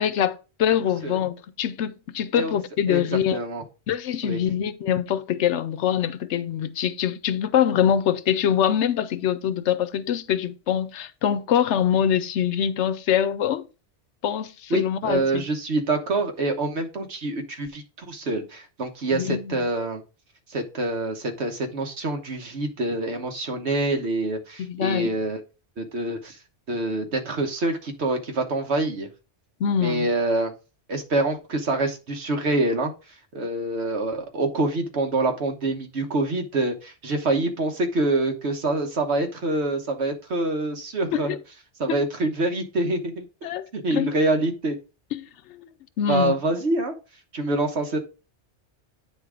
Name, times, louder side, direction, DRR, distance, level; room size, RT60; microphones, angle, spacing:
voice 1, 0.0-3.4 3.9-13.6 14.2-15.4 19.1-19.6 24.6-25.1 29.6-30.1 41.1-41.4 41.9-42.0 43.4-44.2 45.1-45.2 45.5-45.7 46.0-46.3, left 9 dB, 80° left, 0.9 m, -24 dB
voice 2, 0.8-1.2 2.3-2.5 2.9-3.6 4.2-4.4 14.7-20.0 20.5-25.4 25.8-26.4 26.7-29.1 29.8-30.5 30.9-32.9 33.3-41.4 41.8-43.3 43.7-44.8 46.1-46.9 47.3-48.0, right 2 dB, 70° right, 1.4 m, -26 dB
8.8 x 3.6 x 5.0 m
omnidirectional pair, 1.2 m